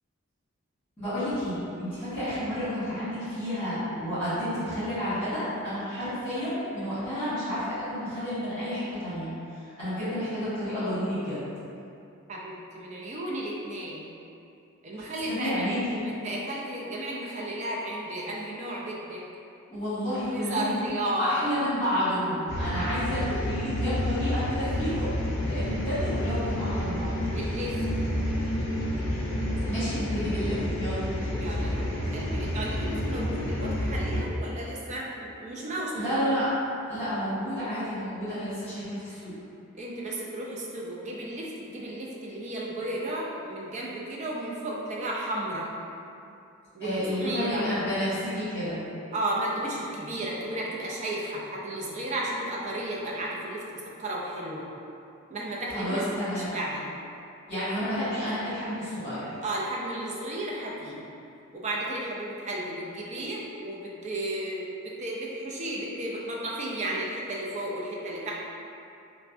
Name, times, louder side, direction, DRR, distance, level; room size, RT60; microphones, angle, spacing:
voice 1, 1.0-11.5 15.3-16.0 19.7-20.8 21.2-25.1 25.4-27.2 29.6-31.0 35.9-36.5 36.9-39.3 46.8-48.8 55.7-56.5 57.5-59.4, equal, 10° left, -16 dB, 1.3 m, -30 dB
voice 2, 12.3-14.1 14.8-15.7 16.0-19.2 20.3-21.4 27.3-27.8 31.3-36.4 39.7-45.7 46.7-47.6 49.1-54.7 55.3-56.1 56.4-56.9 59.4-61.0 61.5-68.3, right 1 dB, 35° right, -4 dB, 0.4 m, -33 dB
sound 1, 22.5-34.2, equal, 55° left, 0.5 m, -29 dB
3.2 x 2.1 x 2.5 m, 2.7 s
head